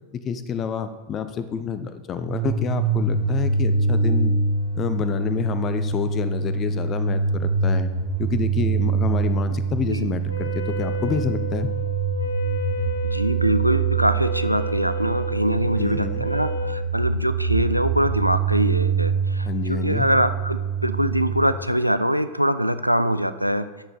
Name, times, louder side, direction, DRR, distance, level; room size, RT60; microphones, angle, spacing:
voice 1, 0.1-4.3 4.7-7.9 8.2-11.7 15.8-16.3 19.4-20.1, left 7 dB, 30° left, 11 dB, 0.7 m, -28 dB
sound 1, 2.2-21.4, right 5 dB, 60° right, 1.8 m, -25 dB
Wind instrument woodwind instrument, 10.2-16.9, left 2 dB, 75° left, 0.9 m, -32 dB
voice 2, 13.0-23.7, equal, 90° right, 12 dB, 0.4 m, -23 dB
9.8 x 6.8 x 4.1 m, 1.2 s
figure-of-eight pair, 90°, 0 cm